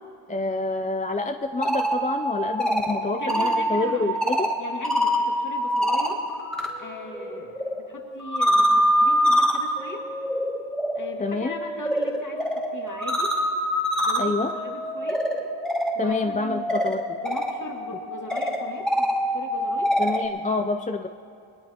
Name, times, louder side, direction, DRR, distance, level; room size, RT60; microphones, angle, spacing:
voice 1, 0.3-4.5 11.2-11.5 14.2-14.5 16.0-17.2 20.0-21.1, left 3 dB, 20° left, 6 dB, 0.4 m, -27 dB
sound 1, 1.4-6.7 7.0-20.3, equal, ahead, 2.2 m, -25 dB
voice 2, 3.1-4.2 4.6-6.2 6.8-7.6 7.9-10.0 10.9-13.4 14.0-15.3 15.9-16.7 17.2-19.9, left 2 dB, 40° left, -1 dB, 2.3 m, -38 dB
22.5 x 18.0 x 2.9 m, 2.5 s
wide cardioid pair, 100°, 47 cm